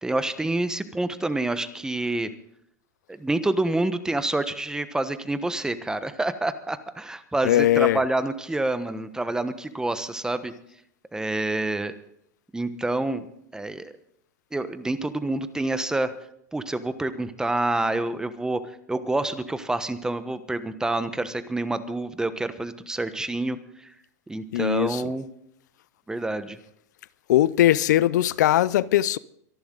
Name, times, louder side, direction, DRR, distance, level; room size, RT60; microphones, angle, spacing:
voice 1, 0.0-2.3 3.1-10.5 11.1-11.9 12.5-13.2 13.5-13.9 14.5-16.1 16.5-18.6 18.9-23.6 24.3-25.3 26.1-26.6, right 2 dB, 5° right, 1.2 m, -27 dB
voice 2, 7.4-8.0 24.5-25.1 27.3-29.2, left 13 dB, 80° left, 0.5 m, -20 dB
25.0 x 11.5 x 3.9 m
hypercardioid pair, 115°, 9 cm